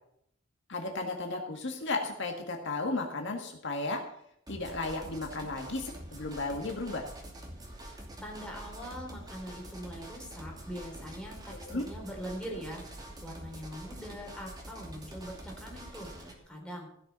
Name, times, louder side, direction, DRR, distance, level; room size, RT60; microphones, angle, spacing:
voice 1, 0.7-4.0 4.5-7.1 11.5-11.9, left 2 dB, 65° left, 2 dB, 1.8 m, -34 dB
sound 1, 4.5-16.3, right 1 dB, 20° right, 2.7 m, -46 dB
voice 2, 7.9-16.9, equal, 5° left, -1 dB, 4.0 m, -43 dB
16.0 x 6.7 x 6.9 m, 0.72 s
head